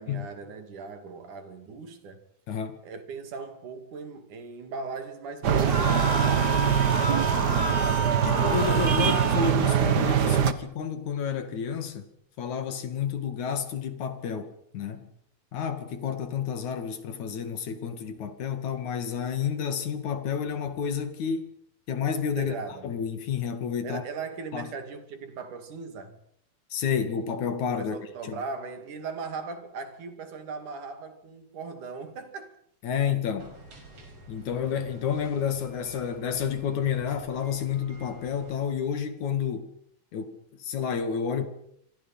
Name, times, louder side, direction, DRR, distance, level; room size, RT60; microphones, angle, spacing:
voice 1, 0.0-2.2 2.8-6.5 22.4-22.9 23.8-26.2 27.8-32.6, right 4 dB, 60° right, 4.1 m, -38 dB
voice 2, 2.5-2.8 8.2-12.1 12.4-15.1 15.5-21.5 21.9-22.5 22.8-24.0 24.5-24.7 26.7-28.0 28.2-28.4 32.8-33.5 34.3-39.7 40.1-41.5, left 7 dB, 55° left, 3.5 m, -30 dB
sound 1, 5.4-10.5, right 8 dB, 85° right, 0.9 m, -23 dB
sound 2, 5.6-9.6, right 2 dB, 15° right, 2.2 m, -29 dB
sound 3, 33.4-38.6, right 2 dB, 45° right, 6.4 m, -48 dB
27.5 x 26.0 x 5.7 m
omnidirectional pair, 4.1 m